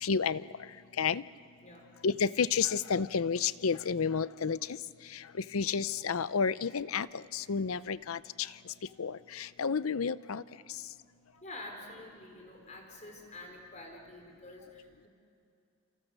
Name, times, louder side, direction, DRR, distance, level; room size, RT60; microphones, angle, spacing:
voice 1, 0.0-0.4 1.0-1.2 2.0-4.6 5.5-7.1 7.3-8.5 9.0-10.4, left 6 dB, 85° left, 17 dB, 0.6 m, -30 dB
voice 2, 1.6-1.9 8.5-9.1 11.3-15.1, left 2 dB, 35° left, 2 dB, 4.3 m, -48 dB
29.5 x 28.0 x 6.6 m, 2.5 s
head